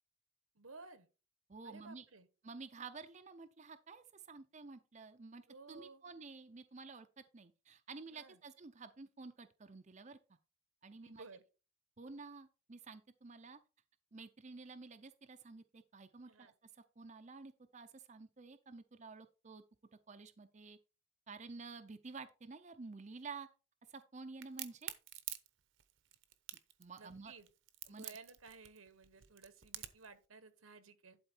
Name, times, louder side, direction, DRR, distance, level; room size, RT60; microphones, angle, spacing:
voice 1, 0.5-1.1 1.6-2.3 5.5-6.0 8.1-8.4 11.0-11.4 16.2-16.5 27.0-27.5 27.8-31.2, right 4 dB, 90° right, 1.4 m, -56 dB
voice 2, 1.5-2.0 2.4-5.4 5.7-10.2 10.8-11.2 12.0-13.6 14.1-19.6 20.1-20.8 21.3-23.5 23.9-24.9 26.8-27.3 27.9-28.1, right 4 dB, 35° right, 0.6 m, -51 dB
Crack, 24.4-30.1, right 13 dB, 65° right, 0.9 m, -47 dB
11.5 x 4.4 x 4.5 m
head